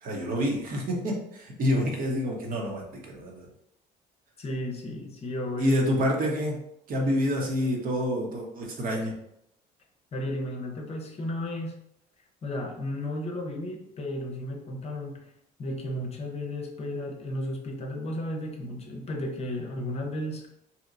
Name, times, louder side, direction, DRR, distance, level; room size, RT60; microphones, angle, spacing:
voice 1, 0.0-3.5 5.6-6.5 6.9-9.1, equal, 55° right, 0 dB, 0.9 m, -27 dB
voice 2, 4.4-5.8 10.1-11.8 12.4-15.3 15.6-20.5, left 1 dB, 40° left, 2 dB, 0.6 m, -34 dB
2.8 x 2.2 x 3.8 m, 0.77 s
cardioid pair, 110°, 17 cm